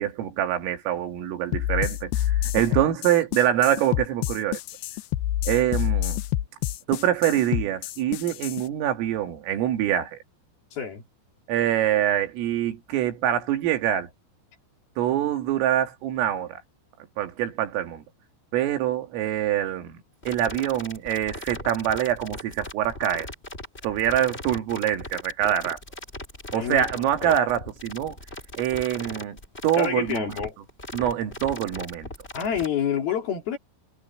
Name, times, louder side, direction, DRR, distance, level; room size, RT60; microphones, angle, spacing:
voice 1, 0.0-4.6 5.5-6.2 6.9-10.2 11.5-14.1 15.0-16.6 17.2-18.0 18.5-20.0 20.3-23.3 23.8-25.8 26.5-28.2 28.6-29.4 29.6-30.2 30.9-32.1, right 11 dB, 85° right, 5.0 m, -25 dB
sound 1, 1.5-8.6, left 13 dB, 80° left, 2.4 m, -27 dB
voice 2, 10.7-11.0 26.5-27.3 29.8-30.6 32.3-33.6, left 8 dB, 50° left, 4.6 m, -28 dB
sound 2, 20.2-32.7, left 2 dB, 10° left, 4.6 m, -39 dB
omnidirectional pair, 5.7 m